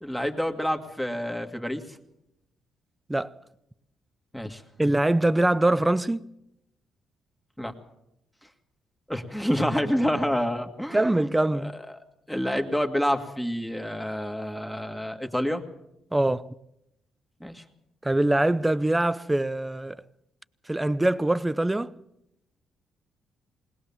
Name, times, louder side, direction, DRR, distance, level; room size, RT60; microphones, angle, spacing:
voice 1, 0.0-2.0 4.3-4.6 7.6-7.7 9.1-12.0 12.3-15.6 17.4-17.6, equal, 5° left, 2.0 m, -28 dB
voice 2, 4.8-6.3 10.9-11.8 16.1-16.5 18.0-20.0 20.7-21.9, right 1 dB, 10° right, 0.7 m, -23 dB
21.0 x 19.0 x 7.2 m
cardioid pair, 90°, 0 cm